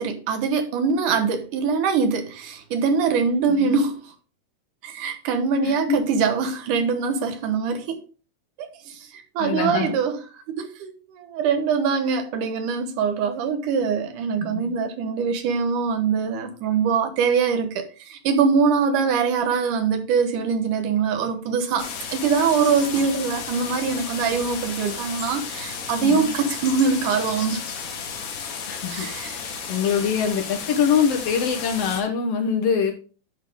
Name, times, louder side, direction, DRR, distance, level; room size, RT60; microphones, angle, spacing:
voice 1, 0.0-4.1 4.8-8.0 8.6-10.2 10.5-27.6 28.9-29.4, right 5 dB, 85° right, 2.7 m, -23 dB
voice 2, 5.6-6.0 9.4-9.9 14.5-14.7 26.0-26.3 28.7-29.1 29.7-32.9, left 7 dB, 65° left, 1.8 m, -23 dB
sound 1, 21.8-32.0, left 6 dB, 85° left, 3.0 m, -33 dB
9.7 x 6.0 x 3.5 m
omnidirectional pair, 3.5 m